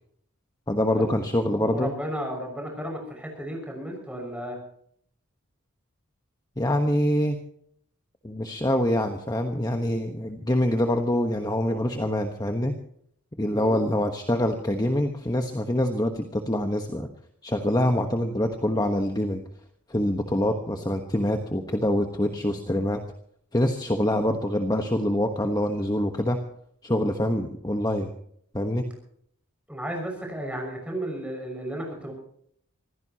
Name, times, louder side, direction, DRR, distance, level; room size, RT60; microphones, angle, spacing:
voice 1, 0.7-1.9 6.6-7.4 8.2-12.7 13.4-17.1 17.4-19.4 19.9-23.0 23.5-26.4 26.8-28.1 28.5-28.8, left 1 dB, 15° left, 5 dB, 1.2 m, -25 dB
voice 2, 1.5-4.6 13.5-13.8 29.7-32.1, right 1 dB, 5° right, 1 dB, 6.1 m, -33 dB
25.5 x 16.0 x 2.9 m, 0.66 s
head